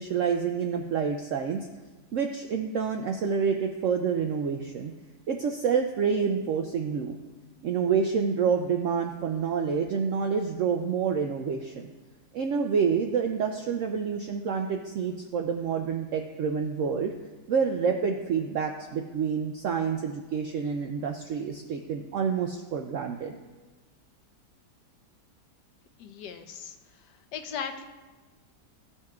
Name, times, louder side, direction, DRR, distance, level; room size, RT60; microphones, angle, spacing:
voice 1, 0.0-1.7 2.1-4.9 5.3-7.1 7.6-11.9 12.3-17.1 17.5-23.4, right 6 dB, 75° right, 4 dB, 0.7 m, -28 dB
voice 2, 26.0-26.7 27.3-27.9, left 7 dB, 80° left, 6 dB, 1.3 m, -37 dB
14.0 x 5.6 x 2.3 m, 1.2 s
omnidirectional pair, 1.8 m